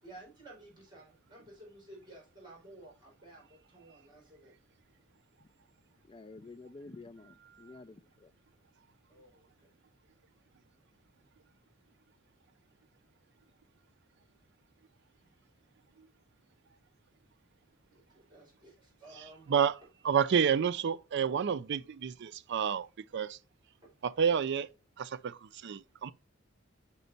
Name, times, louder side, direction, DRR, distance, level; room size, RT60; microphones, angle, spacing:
voice 1, 0.0-4.5 9.1-9.7 15.2-15.3 17.9-19.6, right 2 dB, 20° right, 3.8 m, -54 dB
voice 2, 6.1-8.3, left 3 dB, 25° left, 0.4 m, -50 dB
voice 3, 20.0-22.9 23.1-23.4 24.0-24.7 25.0-26.1, right 7 dB, 60° right, 0.4 m, -29 dB
5.6 x 5.2 x 3.9 m
head